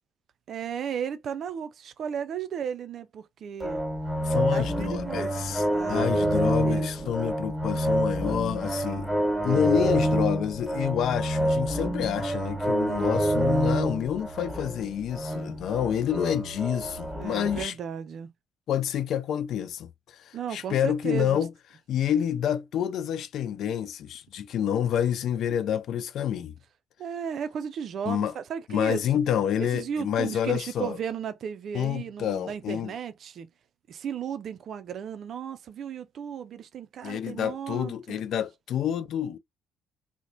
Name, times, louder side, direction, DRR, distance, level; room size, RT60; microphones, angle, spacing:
voice 1, 0.5-3.8 4.5-7.1 9.5-9.8 17.1-18.3 20.3-21.4 27.0-29.0 29.6-33.5 33.9-38.2, right 8 dB, 50° right, 0.4 m, -35 dB
sound 1, 3.6-17.6, right 1 dB, 5° right, 1.2 m, -27 dB
voice 2, 4.2-5.6 5.9-9.1 9.4-17.7 18.7-21.5 21.9-26.5 28.1-28.3 28.7-31.0 31.7-32.9 37.0-39.4, left 9 dB, 55° left, 0.3 m, -28 dB
2.9 x 2.1 x 2.5 m
figure-of-eight pair, 45°, 0 cm